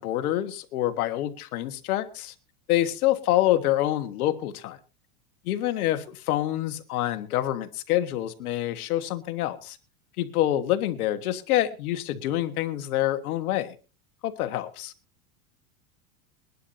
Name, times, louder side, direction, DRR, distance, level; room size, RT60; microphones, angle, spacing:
voice 1, 0.0-2.3 2.7-4.8 5.4-9.8 10.2-13.7 14.2-14.9, left 13 dB, 85° left, 1.6 m, -26 dB
22.5 x 11.0 x 2.8 m
supercardioid pair, 125°, 43 cm